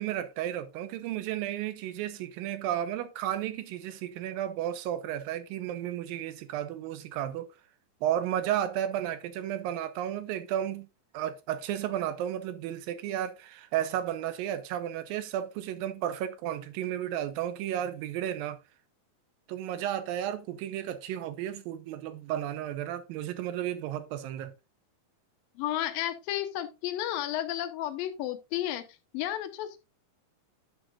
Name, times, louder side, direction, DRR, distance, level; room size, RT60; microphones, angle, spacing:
voice 1, 0.0-7.5 8.0-10.9 11.1-18.6 19.5-24.5, right 11 dB, 90° right, 2.5 m, -33 dB
voice 2, 25.6-28.8 29.1-29.8, left 12 dB, 85° left, 2.5 m, -32 dB
11.0 x 6.2 x 2.4 m
omnidirectional pair, 4.1 m